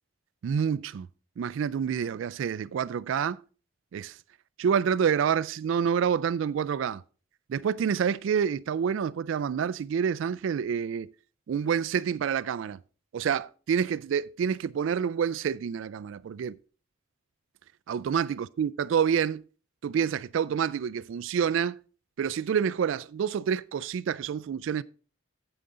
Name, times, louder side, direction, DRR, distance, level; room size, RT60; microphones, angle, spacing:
voice 1, 0.4-1.1 1.4-3.4 3.9-4.2 4.6-7.0 7.5-11.1 11.5-12.8 13.1-16.6 17.9-19.4 19.8-21.8 22.2-24.8, right 7 dB, 65° right, 0.3 m, -28 dB
9.1 x 8.0 x 3.7 m
head